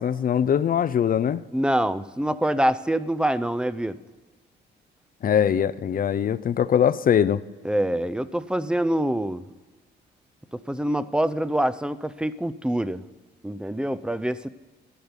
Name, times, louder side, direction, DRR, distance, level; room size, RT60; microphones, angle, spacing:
voice 1, 0.0-1.4 5.2-7.4, left 8 dB, 45° left, 15 dB, 0.5 m, -22 dB
voice 2, 1.5-4.0 7.6-9.5 10.5-13.0 13.4-14.5, right 1 dB, 5° right, 14 dB, 0.5 m, -25 dB
12.5 x 5.2 x 7.9 m, 1.3 s
cardioid pair, 90°, 20 cm